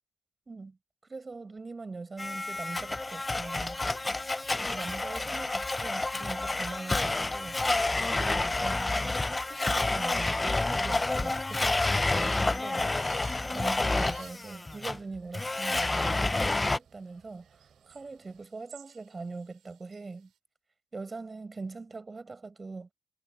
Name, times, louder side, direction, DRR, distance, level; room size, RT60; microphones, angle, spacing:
voice 1, 0.5-0.8 1.1-3.8 4.5-7.8 8.1-12.9 13.5-17.5 17.9-20.3 20.9-22.9, right 3 dB, 25° right, 5.1 m, -42 dB
Domestic sounds home sounds, 2.2-16.8, left 2 dB, 20° left, 0.6 m, -29 dB
sound 1, 12.7-20.2, right 12 dB, 80° right, 5.6 m, -57 dB
sound 2, 12.8-18.5, right 7 dB, 50° right, 7.5 m, -63 dB
cardioid pair, 90°, 0 cm